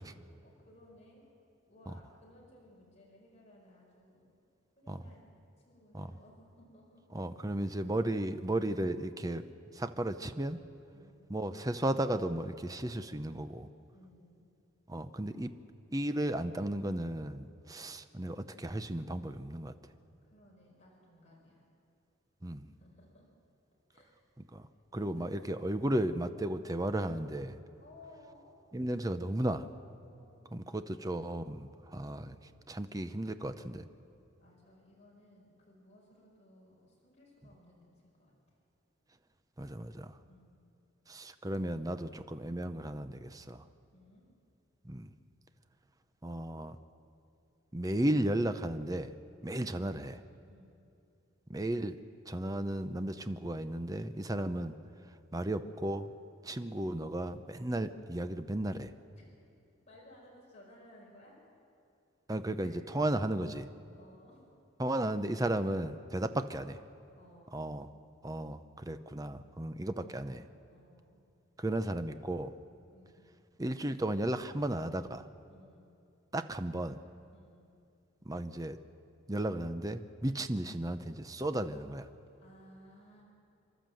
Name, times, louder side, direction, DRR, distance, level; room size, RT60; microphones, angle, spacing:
voice 1, 0.4-1.2 1.7-4.4 4.7-7.0 7.6-7.8 10.9-11.2 13.9-14.4 20.2-21.7 22.7-23.3 23.9-24.1 25.1-25.3 27.8-28.6 30.1-30.5 34.4-38.6 40.3-40.6 43.9-44.3 50.5-50.8 59.1-59.3 59.9-61.4 62.6-62.8 63.9-64.4 67.1-67.7 69.9-71.2 72.9-73.2 75.5-75.9 77.3-77.8 82.4-83.2, left 1 dB, 35° left, -3 dB, 5.1 m, -59 dB
voice 2, 7.1-9.5 9.7-10.6 11.3-13.7 14.9-15.5 15.9-19.7 22.4-22.7 24.5-24.7 24.9-27.6 28.7-29.7 30.5-32.4 32.7-33.9 39.6-40.2 41.1-43.6 44.8-45.1 46.2-46.8 47.7-49.1 49.4-50.2 51.5-52.0 52.3-54.7 55.3-56.1 56.4-58.9 62.3-63.7 64.8-66.8 67.5-67.9 68.2-70.4 71.6-72.5 73.6-75.3 76.3-77.0 78.2-78.8 79.3-82.1, right 1 dB, 20° right, 10 dB, 0.7 m, -34 dB
28.5 x 12.5 x 7.7 m, 2.6 s
head